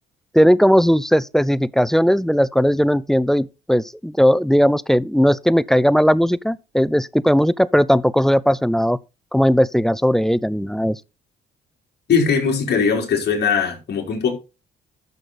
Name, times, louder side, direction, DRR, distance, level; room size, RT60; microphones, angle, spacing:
voice 1, 0.3-9.0 9.3-11.0, equal, ahead, 0.5 m, -17 dB
voice 2, 12.1-14.3, left 6 dB, 55° left, 4.1 m, -20 dB
12.0 x 6.4 x 4.1 m
cardioid pair, 90°, 20 cm